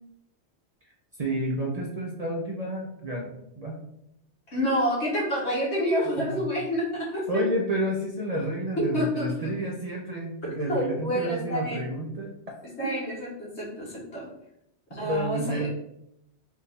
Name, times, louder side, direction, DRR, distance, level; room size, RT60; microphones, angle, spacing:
voice 1, 1.2-3.8 6.2-6.4 7.3-12.3 12.8-12.9 14.9-15.7, right 1 dB, 40° right, -2 dB, 0.7 m, -30 dB
voice 2, 4.5-7.4 8.8-9.3 10.7-11.8 12.8-14.3 14.9-15.7, equal, 70° left, -5 dB, 1.9 m, -28 dB
4.4 x 2.7 x 3.6 m, 0.77 s
omnidirectional pair, 1.2 m